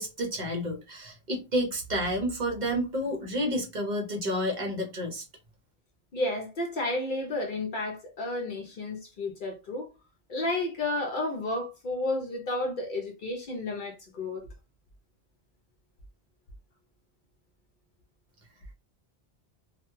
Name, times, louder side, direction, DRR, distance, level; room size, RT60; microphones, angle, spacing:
voice 1, 0.0-5.2, equal, 50° right, 0.7 m, -30 dB
voice 2, 6.1-9.9 10.3-14.5, left 2 dB, 60° left, 0.6 m, -32 dB
2.2 x 2.1 x 3.0 m
omnidirectional pair, 1.1 m